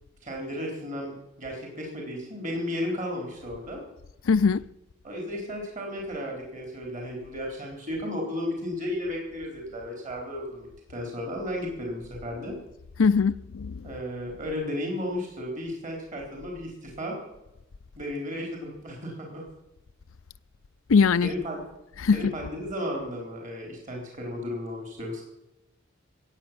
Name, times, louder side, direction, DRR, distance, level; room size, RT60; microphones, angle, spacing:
voice 1, 0.2-3.8 5.0-12.5 13.8-17.2 18.0-19.4 21.2-21.7 22.1-25.2, left 1 dB, 40° right, 4.2 m, -34 dB
voice 2, 4.2-4.6 13.0-13.8 20.9-21.3 22.0-22.3, left 5 dB, 75° left, 0.5 m, -21 dB
16.0 x 9.2 x 7.6 m
head